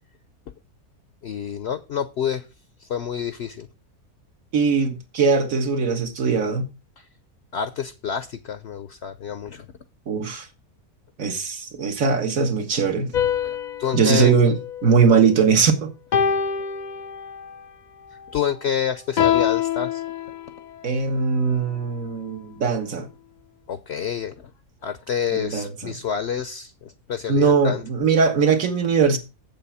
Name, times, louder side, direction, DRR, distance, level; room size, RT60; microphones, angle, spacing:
voice 1, 1.2-2.5 2.8-3.7 7.0-7.1 7.5-9.7 13.4-14.3 18.3-20.0 23.7-24.5 24.8-27.8, left 8 dB, 55° left, 0.9 m, -28 dB
voice 2, 4.5-6.7 10.1-10.5 11.2-13.1 13.9-15.9 20.8-23.1 25.3-25.9 27.3-29.2, right 5 dB, 60° right, 1.8 m, -20 dB
sound 1, 13.1-15.5 16.1-17.6 19.2-20.8, left 8 dB, 85° left, 0.4 m, -25 dB
7.7 x 7.7 x 5.7 m
omnidirectional pair, 1.6 m